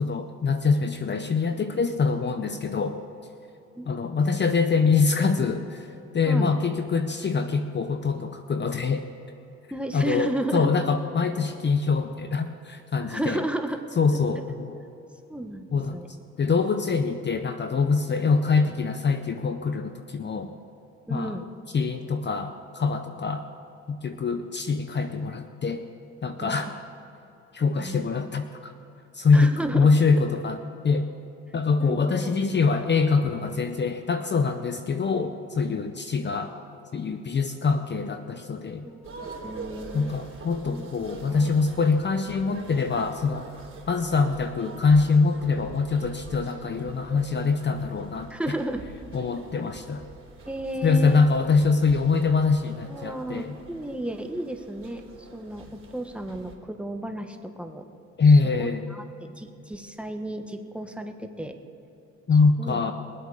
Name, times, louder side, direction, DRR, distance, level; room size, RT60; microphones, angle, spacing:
voice 1, 0.0-3.0 3.9-5.9 6.1-9.0 9.9-13.4 14.0-14.8 15.7-16.0 16.4-20.5 21.1-21.4 21.7-23.5 23.9-25.8 26.2-26.7 27.5-28.7 29.1-31.1 31.5-36.5 36.9-38.8 39.9-43.5 43.9-48.5 49.1-50.0 50.8-53.6 58.2-58.9 62.3-62.9, left 4 dB, 35° left, 8 dB, 0.7 m, -24 dB
voice 2, 6.2-6.6 9.7-10.7 13.1-13.8 14.1-14.3 15.3-16.1 21.1-21.5 26.4-26.5 27.8-28.5 29.3-29.9 31.8-32.3 38.8-40.1 40.6-41.5 48.3-48.8 49.6-49.7 50.4-51.2 52.9-57.8 58.3-61.5 62.6-62.9, right 1 dB, 5° right, 5 dB, 1.2 m, -33 dB
sound 1, 39.0-56.6, right 4 dB, 45° right, 3.5 m, -45 dB
21.5 x 8.2 x 4.9 m, 3.0 s
cardioid pair, 80°, 30 cm